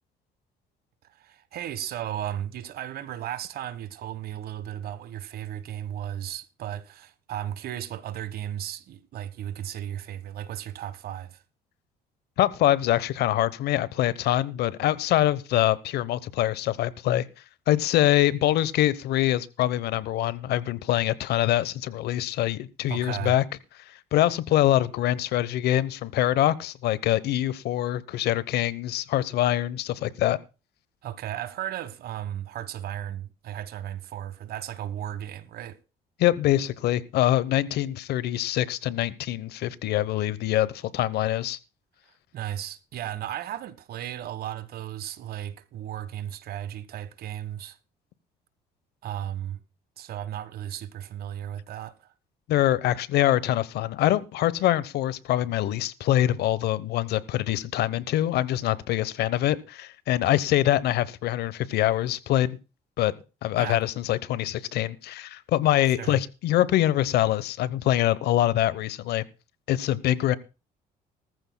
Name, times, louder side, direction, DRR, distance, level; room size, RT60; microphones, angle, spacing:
voice 1, 1.1-11.4 22.9-23.4 31.0-35.8 42.3-47.8 49.0-49.6 50.0-52.1 63.6-63.8 65.8-66.2, right 11 dB, 65° right, 1.4 m, -35 dB
voice 2, 12.4-17.2 17.7-23.4 24.1-30.4 36.2-41.6 52.5-62.6 63.0-63.1 63.4-69.2 69.7-70.4, left 13 dB, 75° left, 1.0 m, -24 dB
19.0 x 14.5 x 2.2 m
cardioid pair, 110°, 17 cm